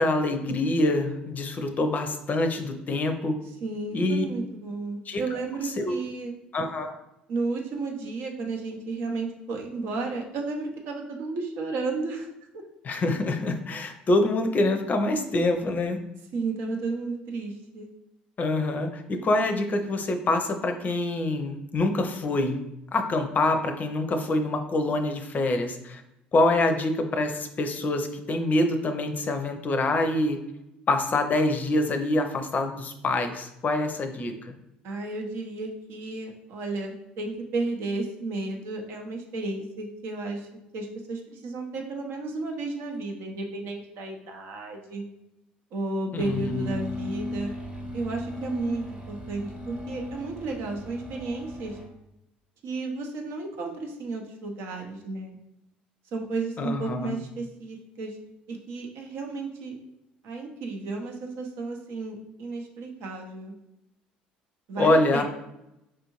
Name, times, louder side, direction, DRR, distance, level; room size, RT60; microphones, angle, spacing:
voice 1, 0.0-3.4 3.9-4.3 5.1-5.2 5.8-6.0 6.5-7.0 12.8-16.0 18.4-22.6 22.9-26.0 26.3-30.4 30.9-34.5 46.1-46.8 56.6-57.1 64.8-65.2, left 2 dB, 35° left, 7 dB, 0.5 m, -25 dB
voice 2, 3.6-6.4 7.3-12.3 12.5-12.6 16.3-17.9 34.8-40.5 40.7-45.0 45.7-47.5 47.9-51.8 52.6-55.4 56.1-58.2 58.5-59.8 60.2-63.5 64.7-65.2, right 3 dB, 60° right, 2 dB, 0.7 m, -33 dB
sound 1, 46.2-51.9, left 1 dB, 25° right, 1.0 m, -37 dB
4.6 x 2.6 x 3.0 m, 0.87 s
hypercardioid pair, 60°, 5 cm